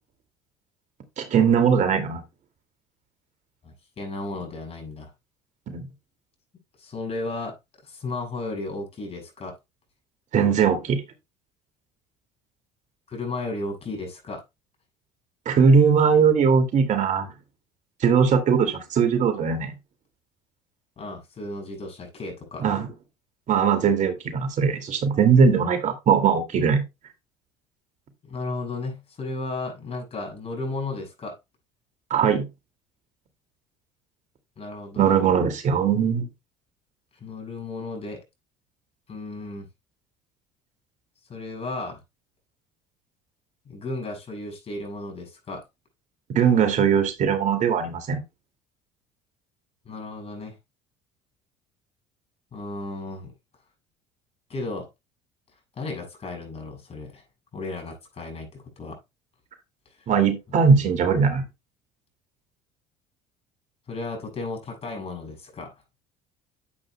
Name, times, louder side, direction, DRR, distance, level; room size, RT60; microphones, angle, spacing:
voice 1, 1.2-2.2 5.7-5.9 10.3-11.0 15.5-17.3 18.0-19.7 22.6-22.9 23.5-26.8 32.1-32.5 35.0-36.3 46.3-48.2 60.1-61.4, right 6 dB, 50° right, 2.4 m, -20 dB
voice 2, 3.6-5.1 6.8-7.5 7.8-9.5 13.1-14.4 21.0-22.8 28.2-31.3 34.6-35.2 37.2-38.2 39.1-39.7 41.3-42.0 43.6-45.6 49.8-50.6 52.5-53.3 54.5-54.9 55.7-57.2 57.5-59.0 60.0-60.1 60.6-61.0 63.9-65.8, left 2 dB, 40° left, 6.8 m, -34 dB
11.0 x 8.1 x 2.2 m
hypercardioid pair, 75°, 16 cm